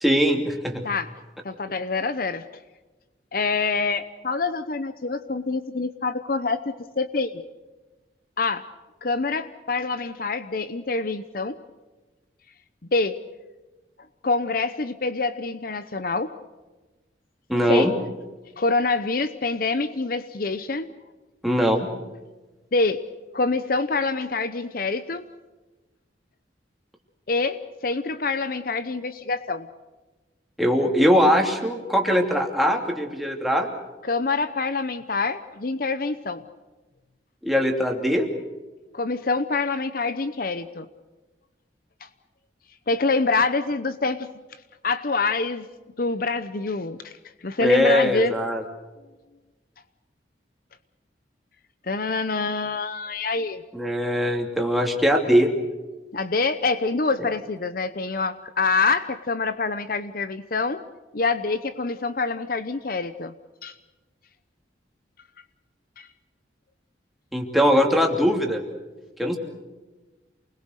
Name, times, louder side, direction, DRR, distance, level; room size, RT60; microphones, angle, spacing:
voice 1, 0.0-0.8 17.5-17.9 21.4-21.9 30.6-33.7 37.4-38.3 47.6-48.6 53.7-55.5 67.3-68.6 69.2-69.4, equal, ahead, 1 dB, 2.9 m, -21 dB
voice 2, 1.4-2.4 3.3-7.4 8.4-8.6 9.0-11.6 12.9-13.2 14.2-16.3 17.7-17.9 18.6-20.9 22.7-23.0 23.3-25.2 27.3-29.7 34.1-36.4 38.9-40.9 42.0-42.1 42.9-44.3 44.8-45.7 46.0-47.1 47.4-48.4 51.9-53.6 56.1-60.8 61.1-63.3 63.6-63.7 66.0-66.1, left 3 dB, 50° left, 12 dB, 0.8 m, -26 dB
28.5 x 21.0 x 6.6 m, 1.2 s
head